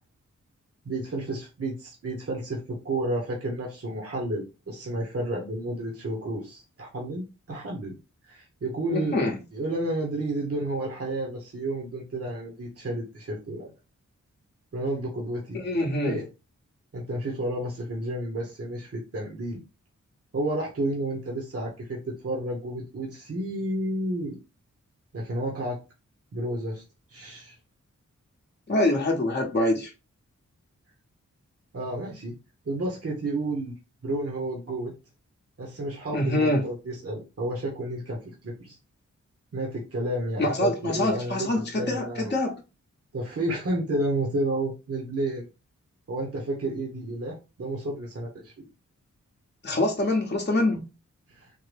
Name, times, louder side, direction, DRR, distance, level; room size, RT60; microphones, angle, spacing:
voice 1, 0.8-7.9 8.2-9.2 9.5-13.7 14.7-15.6 16.0-16.2 16.9-19.6 20.3-24.4 25.1-25.8 26.3-26.8 27.1-27.6 31.7-32.3 32.6-33.7 34.0-34.9 35.6-38.8 39.5-42.3 43.1-45.5 46.1-48.6 51.3-51.5, right 1 dB, 50° right, 1.0 m, -31 dB
voice 2, 8.9-9.3 15.5-16.2 28.7-29.9 36.1-36.6 40.4-42.6 49.6-50.9, left 1 dB, 35° left, 0.8 m, -25 dB
3.7 x 2.2 x 3.2 m
wide cardioid pair, 65°, 30 cm